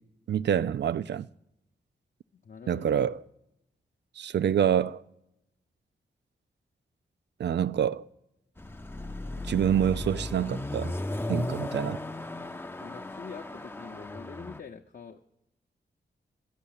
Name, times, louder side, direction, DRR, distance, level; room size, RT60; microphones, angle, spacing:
voice 1, 0.3-1.3 2.7-3.2 4.2-5.0 7.4-8.1 9.4-11.0 11.3-12.0, right 9 dB, 60° right, 0.4 m, -26 dB
voice 2, 2.3-2.9 12.8-15.2, left 5 dB, 45° left, 0.7 m, -45 dB
Car passing by / Accelerating revving vroom, 8.6-14.6, left 1 dB, 10° left, 0.5 m, -36 dB
12.0 x 5.5 x 8.6 m
cardioid pair, 50°, 20 cm